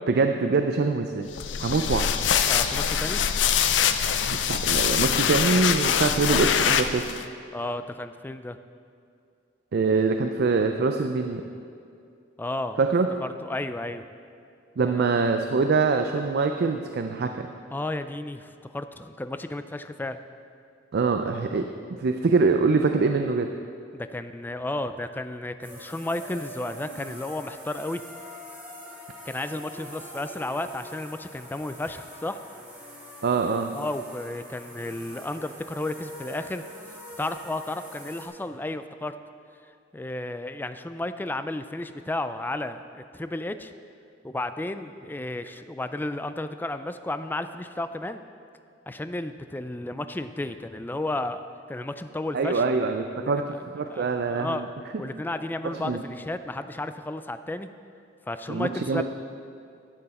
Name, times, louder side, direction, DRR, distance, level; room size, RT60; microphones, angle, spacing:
voice 1, 0.1-1.3 1.6-2.1 4.3-7.0 9.7-11.4 12.8-13.1 14.8-17.5 20.9-21.7 22.0-23.5 33.2-33.7 52.3-54.7 55.8-56.0 58.5-59.0, right 4 dB, 60° right, 5 dB, 0.4 m, -24 dB
sound 1, 1.3-7.2, left 8 dB, 70° left, 0.5 m, -24 dB
voice 2, 2.5-3.2 7.5-8.6 12.4-12.8 13.2-14.1 14.8-15.2 17.7-20.2 23.9-28.0 29.2-32.4 33.7-36.6 37.2-39.2 39.9-43.7 44.2-48.2 48.9-51.4 51.7-52.6 53.2-53.4 53.9-54.7 55.0-57.7 58.3-59.0, left 2 dB, 10° left, 10 dB, 0.3 m, -33 dB
sound 2, 25.6-38.3, equal, 10° right, 1.8 m, -44 dB
12.0 x 7.7 x 4.2 m, 2.4 s
head